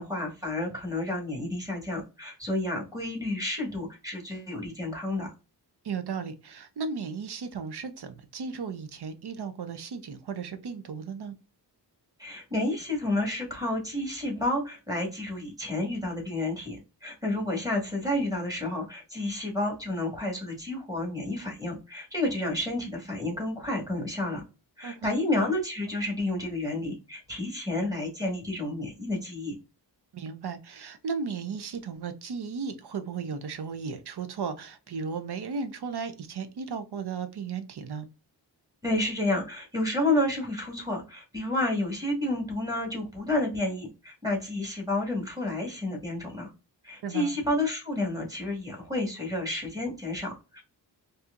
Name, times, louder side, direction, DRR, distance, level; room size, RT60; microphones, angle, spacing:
voice 1, 0.0-5.3 12.2-24.4 24.8-29.5 38.8-46.5 46.8-50.6, left 1 dB, 10° right, 1.6 m, -30 dB
voice 2, 5.8-11.3 24.8-25.1 30.1-38.1 47.0-47.4, right 5 dB, 65° right, 0.7 m, -35 dB
4.2 x 2.7 x 2.5 m
wide cardioid pair, 85°, 42 cm